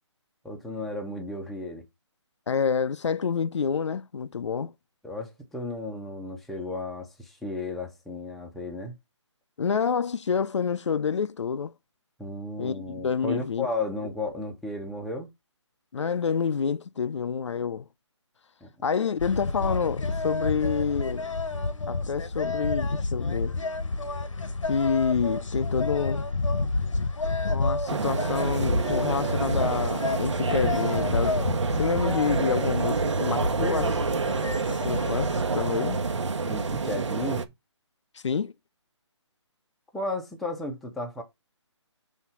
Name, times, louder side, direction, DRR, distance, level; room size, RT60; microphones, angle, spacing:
voice 1, 0.4-1.8 5.0-9.0 12.2-15.3 18.6-18.7 36.4-37.4 39.9-41.2, left 2 dB, ahead, 0.6 m, -34 dB
voice 2, 2.5-4.7 9.6-11.7 12.6-13.7 15.9-17.9 18.8-21.3 21.9-23.6 24.7-26.2 27.5-31.4 31.7-34.0 34.7-36.0 38.1-38.5, left 6 dB, 70° left, 0.5 m, -28 dB
sound 1, 19.2-35.4, left 3 dB, 90° left, 1.1 m, -30 dB
sound 2, 27.9-37.4, right 4 dB, 70° right, 1.1 m, -28 dB
6.3 x 3.6 x 5.6 m
hypercardioid pair, 160°, 16 cm